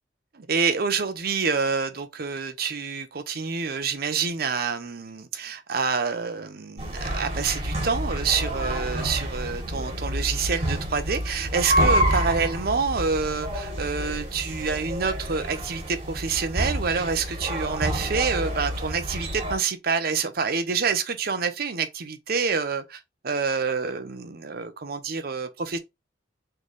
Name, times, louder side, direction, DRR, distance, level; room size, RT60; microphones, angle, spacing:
voice 1, 0.3-25.8, right 5 dB, 60° right, 0.7 m, -27 dB
sound 1, 6.8-19.5, right 1 dB, 35° right, 1.7 m, -28 dB
4.1 x 3.3 x 3.1 m
head